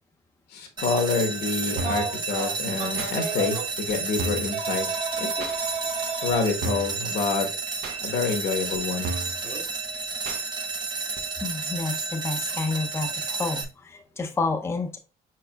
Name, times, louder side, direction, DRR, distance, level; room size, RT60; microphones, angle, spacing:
voice 1, 0.5-4.9 5.2-5.5 6.2-7.5 8.0-9.1, left 4 dB, 70° left, 1.1 m, -27 dB
sound 1, 0.8-13.6, right 4 dB, 25° right, 0.6 m, -31 dB
Telephone, 1.8-3.7 4.5-6.4 7.8-7.9 9.4-9.6, right 5 dB, 45° right, 1.2 m, -32 dB
sound 2, 1.8-2.1 3.0-3.1 3.9-4.0 4.2-4.5 5.4-5.6 6.3-6.4 6.6-7.0 7.8-8.0 8.7-8.8 9.0-9.4 10.2-10.4 11.2-11.3, right 2 dB, 80° right, 0.7 m, -32 dB
voice 2, 11.4-15.0, left 3 dB, 15° left, 0.5 m, -30 dB
4.7 x 4.5 x 2.2 m
cardioid pair, 110°, 17 cm